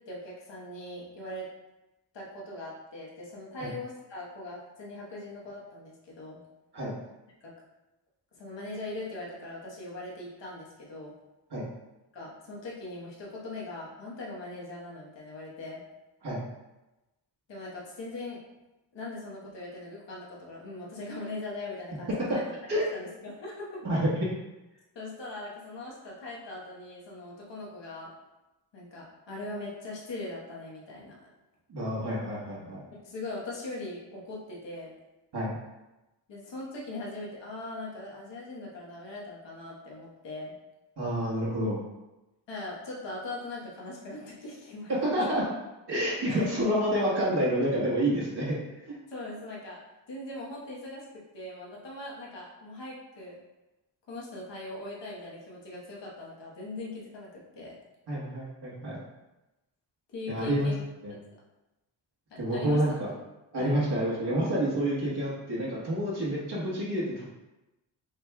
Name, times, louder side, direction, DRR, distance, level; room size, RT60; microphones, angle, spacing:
voice 1, 0.1-1.5 2.1-6.4 7.4-7.5 8.3-11.1 12.1-15.8 17.5-18.4 18.9-22.4 22.7-23.8 24.9-28.1 28.7-31.3 33.0-34.9 36.3-40.5 42.5-45.0 46.3-46.4 49.1-49.8 50.1-51.1 51.3-53.4 54.1-57.7 60.1-60.7 61.1-61.2 62.3-62.8 63.6-63.8, left 2 dB, 75° left, -4 dB, 1.4 m, -40 dB
voice 2, 31.7-32.8 35.3-35.6 41.0-41.8 45.0-45.4 45.9-48.6 48.9-49.0 58.1-59.0 60.3-60.7 61.0-61.1 62.4-63.1 63.5-67.3, equal, 60° right, -6 dB, 1.5 m, -28 dB
6.4 x 3.1 x 2.3 m, 1.0 s
cardioid pair, 70°, 44 cm